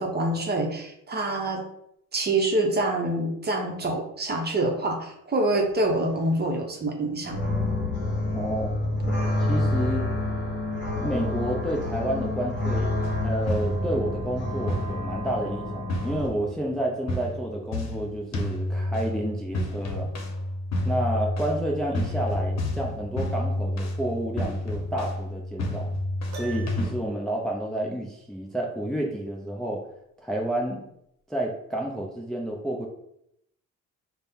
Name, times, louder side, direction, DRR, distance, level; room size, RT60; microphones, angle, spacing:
voice 1, 0.0-1.6 2.1-7.4 9.1-9.2, right 2 dB, 35° right, 2 dB, 0.8 m, -26 dB
sound 1, 7.2-16.3, left 1 dB, 35° left, 1.2 m, -28 dB
voice 2, 8.3-9.1 9.5-10.1 11.0-20.1 20.9-25.9 26.4-29.8 30.2-30.8 31.3-32.9, right 1 dB, ahead, -1 dB, 0.5 m, -30 dB
sound 2, 13.0-14.1 14.7-15.3 15.9-16.7 17.1-26.9, left 1 dB, 60° left, 0.8 m, -30 dB
Piano, 26.3-27.2, right 4 dB, 65° right, 0.8 m, -42 dB
4.2 x 2.1 x 3.5 m, 0.76 s
cardioid pair, 90°, 30 cm